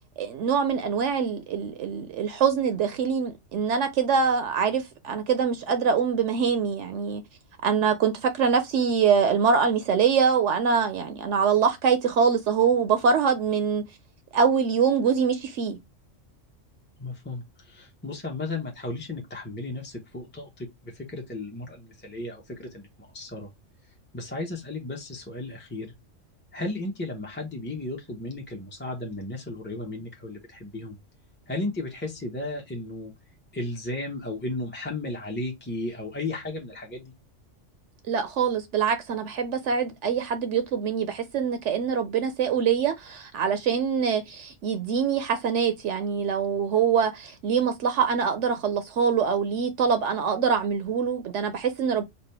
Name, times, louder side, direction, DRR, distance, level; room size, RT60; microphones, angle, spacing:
voice 1, 0.2-7.2 7.6-13.8 14.3-15.8 38.1-52.0, right 6 dB, 70° right, 0.9 m, -24 dB
voice 2, 17.0-23.5 24.1-25.9 26.5-31.0 31.5-33.1 33.5-37.1, left 2 dB, 10° left, 0.6 m, -34 dB
4.2 x 2.4 x 3.3 m
omnidirectional pair, 1.3 m